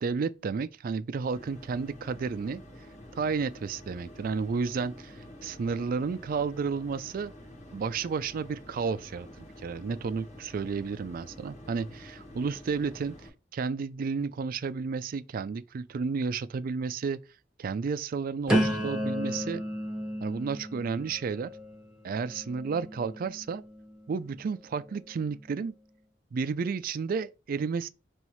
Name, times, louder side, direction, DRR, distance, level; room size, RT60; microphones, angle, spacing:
voice 1, 0.0-2.6 3.2-7.3 7.7-13.2 13.5-17.2 17.6-19.6 20.2-21.5 22.0-23.6 24.1-25.8 26.3-27.9, right 5 dB, 50° right, 0.3 m, -32 dB
sound 1, 1.3-13.3, left 1 dB, 40° left, 1.2 m, -48 dB
sound 2, 18.5-24.3 24.9-25.3, equal, 5° right, 0.9 m, -33 dB
5.6 x 3.0 x 3.0 m
head